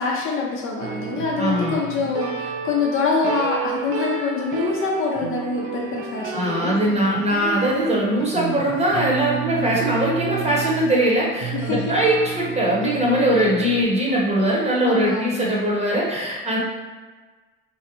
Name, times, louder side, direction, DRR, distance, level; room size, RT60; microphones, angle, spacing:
voice 1, 0.0-6.7 11.5-11.9 14.8-15.5, left 4 dB, 45° left, -2 dB, 0.5 m, -25 dB
sound 1, 0.8-13.8, right 7 dB, 50° right, 0.5 m, -31 dB
voice 2, 1.4-1.8 6.3-16.6, right 1 dB, 20° right, -4 dB, 0.9 m, -21 dB
2.6 x 2.1 x 2.8 m, 1.3 s
hypercardioid pair, 65°, 31 cm